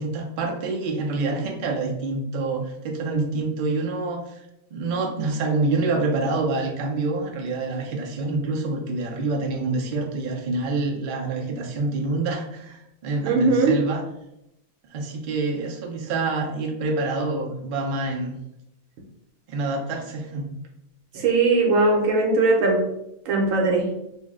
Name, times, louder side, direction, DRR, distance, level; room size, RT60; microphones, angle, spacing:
voice 1, 0.0-4.4 4.7-14.0 14.9-18.4 19.5-20.5, right 3 dB, 60° right, 1 dB, 0.5 m, -27 dB
voice 2, 13.2-13.8 21.1-22.8 23.3-23.9, right 3 dB, 80° right, 0 dB, 1.1 m, -19 dB
2.6 x 2.0 x 3.5 m, 0.85 s
omnidirectional pair, 1.3 m